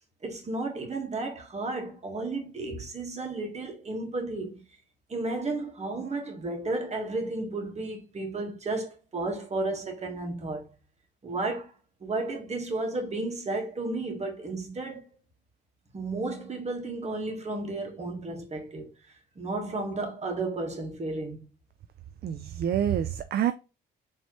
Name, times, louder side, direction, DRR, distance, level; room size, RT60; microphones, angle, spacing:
voice 1, 0.2-4.6 5.1-10.7 11.2-11.7 12.0-15.1 15.9-18.9 19.3-21.4, right 2 dB, 35° right, 1.6 m, -33 dB
voice 2, 22.2-23.5, right 9 dB, 50° right, 0.4 m, -27 dB
4.3 x 3.2 x 3.0 m
cardioid pair, 90°, 20 cm